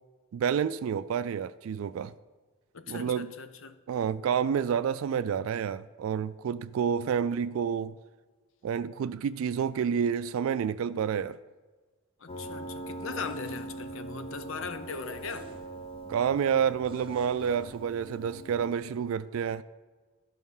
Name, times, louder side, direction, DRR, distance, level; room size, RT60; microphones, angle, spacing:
voice 1, 0.3-2.1 2.9-3.3 3.9-8.0 8.6-11.4 16.1-19.6, right 7 dB, 80° right, 0.3 m, -29 dB
voice 2, 2.7-3.8 12.2-15.5, left 5 dB, 70° left, 0.7 m, -39 dB
Piano, 12.3-18.8, right 2 dB, 25° left, 0.6 m, -42 dB
sound 1, 12.9-13.9 14.8-15.9 16.8-17.8, right 2 dB, 25° right, 0.8 m, -49 dB
12.0 x 5.6 x 5.5 m
head